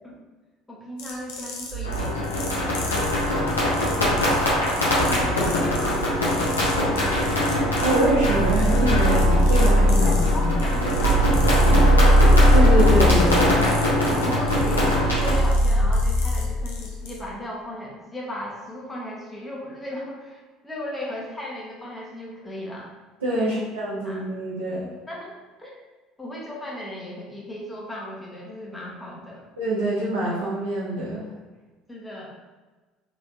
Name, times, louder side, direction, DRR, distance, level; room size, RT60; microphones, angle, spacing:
voice 1, 0.7-4.4 5.0-7.4 10.0-12.3 14.0-22.9 23.4-23.7 24.0-24.2 25.1-25.3 25.6-25.8 26.2-29.5 31.9-32.3, left 1 dB, 15° left, -4 dB, 0.9 m, -36 dB
sound 1, 1.0-17.2, left 4 dB, 60° left, 0.6 m, -40 dB
sound 2, 1.7-17.1, equal, 55° right, 1.1 m, -21 dB
sound 3, 1.8-15.3, left 1 dB, 85° left, 0.9 m, -23 dB
voice 2, 7.8-10.1 10.4-10.5 12.5-13.7 23.2-24.9 29.6-31.2, right 1 dB, 80° right, -12 dB, 0.8 m, -25 dB
3.3 x 2.9 x 2.6 m, 1.3 s
figure-of-eight pair, 60°, 0 cm